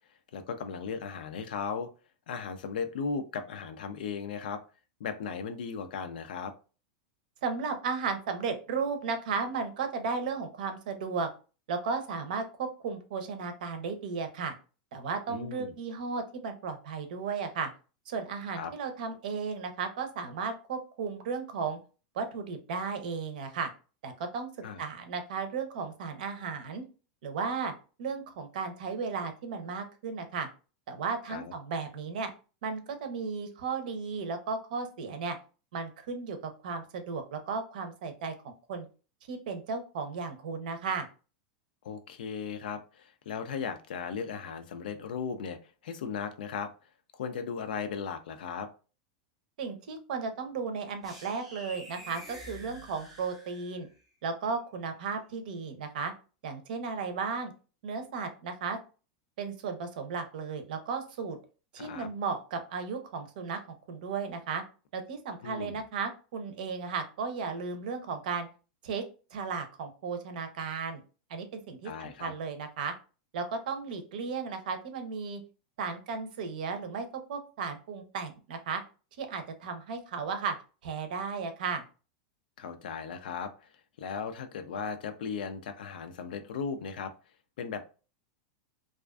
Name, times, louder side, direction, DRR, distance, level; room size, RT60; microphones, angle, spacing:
voice 1, 0.3-1.9 2.3-4.6 5.0-6.5 15.3-15.7 18.6-18.7 24.6-24.8 31.3-31.5 41.8-46.7 47.1-48.7 61.8-62.1 65.4-65.8 71.8-72.3 82.6-83.7 84.0-87.1 87.6-87.8, left 6 dB, 90° left, 8 dB, 0.4 m, -37 dB
voice 2, 7.4-11.3 11.7-14.5 14.9-17.7 18.1-21.8 22.1-23.7 24.0-24.5 24.8-26.8 27.2-27.7 28.0-30.5 30.9-32.3 32.6-35.4 35.7-38.9 39.3-41.1 49.6-53.9 54.2-56.1 56.4-57.5 57.8-58.8 59.4-61.4 61.7-63.6 63.9-64.6 64.9-68.5 68.8-69.0 69.3-71.0 71.3-72.9 73.3-75.4 75.8-78.8 79.2-80.5 80.8-81.8, right 5 dB, 75° right, 8 dB, 0.6 m, -35 dB
sound 1, 51.0-53.9, equal, 5° right, 0.7 m, -47 dB
2.4 x 2.3 x 2.3 m, 0.34 s
supercardioid pair, 155°, 5 cm